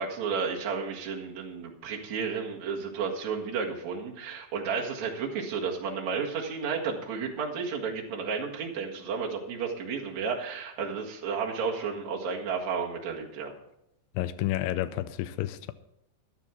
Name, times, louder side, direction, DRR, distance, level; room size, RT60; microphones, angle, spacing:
voice 1, 0.0-13.5, right 5 dB, 55° right, 3.0 m, -32 dB
voice 2, 14.2-15.7, left 14 dB, 90° left, 2.4 m, -30 dB
13.5 x 10.5 x 4.5 m
omnidirectional pair, 4.0 m